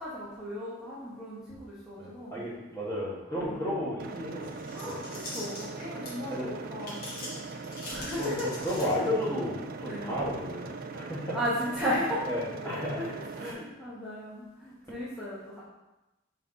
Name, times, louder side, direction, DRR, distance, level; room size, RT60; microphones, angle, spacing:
voice 1, 0.0-2.4 3.3-3.6 4.7-7.0 7.9-8.5 9.8-10.1 11.3-12.2 12.6-15.6, equal, ahead, -10 dB, 1.2 m, -35 dB
voice 2, 2.0-4.5 4.8-5.0 6.3-6.5 6.8-6.9 8.2-11.4 12.3-13.0 13.3-13.7, left 1 dB, 15° left, -7 dB, 1.4 m, -33 dB
sound 1, 4.0-13.5, right 4 dB, 45° right, 0.3 m, -41 dB
sound 2, 4.4-6.3 6.8-9.2, left 1 dB, 45° left, 1.9 m, -42 dB
4.1 x 4.1 x 5.4 m, 1.0 s
head